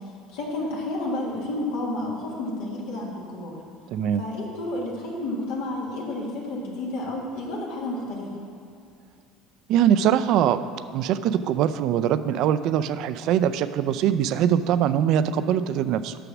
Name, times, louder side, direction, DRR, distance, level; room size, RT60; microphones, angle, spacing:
voice 1, 0.3-3.6 4.2-8.2, left 2 dB, 85° left, -4 dB, 1.6 m, -31 dB
voice 2, 3.9-4.2 9.7-10.6 10.9-16.2, right 9 dB, 65° right, 13 dB, 0.3 m, -22 dB
6.8 x 6.0 x 6.0 m, 2.4 s
supercardioid pair, 100°, 0 cm